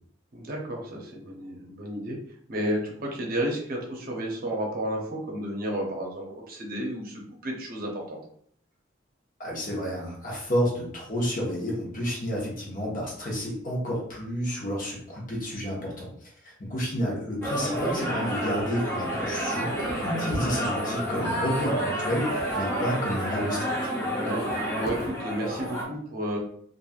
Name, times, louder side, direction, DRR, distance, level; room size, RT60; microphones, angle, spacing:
voice 1, 0.3-2.2 2.5-8.2 24.1-26.4, equal, 50° right, -1 dB, 0.7 m, -32 dB
voice 2, 9.4-16.1 16.4-23.7, equal, 45° left, -3 dB, 1.1 m, -30 dB
sound 1, 17.4-25.8, equal, 15° left, 0.7 m, -29 dB
3.1 x 2.5 x 2.3 m, 0.62 s
head